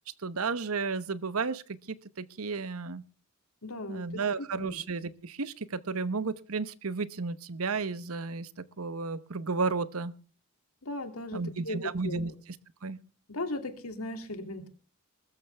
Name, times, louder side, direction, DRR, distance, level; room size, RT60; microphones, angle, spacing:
voice 1, 0.2-3.0 3.9-8.5 8.8-10.1 11.3-12.3 12.8-13.0, right 4 dB, 80° right, 16 dB, 0.9 m, -33 dB
voice 2, 3.6-4.8 10.8-12.3 13.3-14.7, left 2 dB, 85° left, 7 dB, 2.6 m, -38 dB
20.5 x 14.0 x 3.4 m, 0.37 s
head